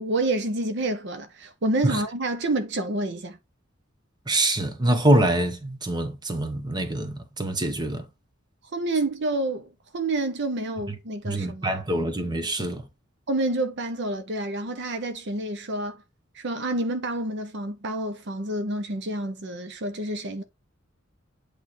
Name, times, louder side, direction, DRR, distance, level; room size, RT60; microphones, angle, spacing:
voice 1, 0.0-3.4 8.7-11.8 13.3-16.0 16.3-20.4, right 2 dB, 60° right, 0.8 m, -28 dB
voice 2, 4.3-8.0 11.2-12.8, right 1 dB, 20° right, 1.2 m, -24 dB
8.3 x 3.4 x 4.3 m
head